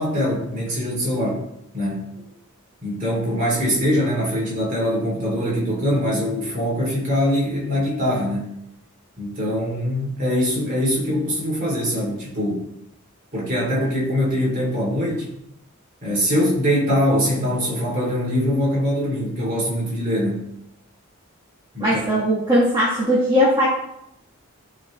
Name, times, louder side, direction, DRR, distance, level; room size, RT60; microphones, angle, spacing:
voice 1, 0.0-1.4 1.7-2.1 2.8-8.6 9.2-12.6 13.3-15.3 16.0-20.5 21.7-22.0, equal, 35° right, -5 dB, 2.8 m, -23 dB
voice 2, 21.8-23.6, equal, 20° right, -8 dB, 1.5 m, -19 dB
12.0 x 4.1 x 3.1 m, 0.80 s
head